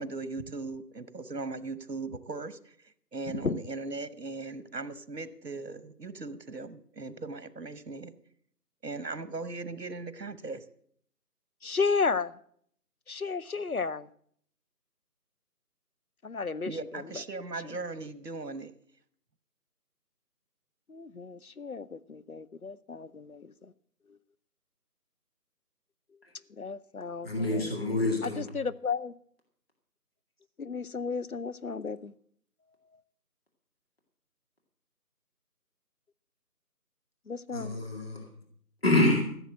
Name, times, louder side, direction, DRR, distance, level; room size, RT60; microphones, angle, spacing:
voice 1, 0.0-2.7 3.1-8.1 8.8-10.6 16.7-18.7, right 3 dB, 80° right, 14 dB, 1.2 m, -38 dB
voice 2, 11.6-12.3 13.1-14.1 16.2-17.0 17.6-17.8 20.9-23.7 26.5-27.8 28.2-29.1 30.6-32.1 37.3-37.8, left 5 dB, 65° left, 16 dB, 0.7 m, -33 dB
voice 3, 27.2-28.4 37.5-38.2 38.8-39.2, left 2 dB, 35° left, 0 dB, 2.2 m, -26 dB
14.5 x 7.3 x 7.6 m, 0.63 s
figure-of-eight pair, 175°, 48 cm